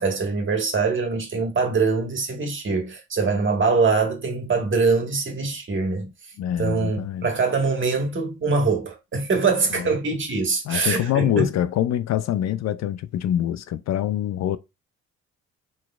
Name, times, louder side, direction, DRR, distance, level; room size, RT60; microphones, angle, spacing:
voice 1, 0.0-6.1 6.6-11.5, right 4 dB, 40° right, 1.7 m, -23 dB
voice 2, 6.4-7.3 10.7-14.6, left 11 dB, 60° left, 0.5 m, -25 dB
4.8 x 4.0 x 2.4 m
cardioid pair, 90°, 30 cm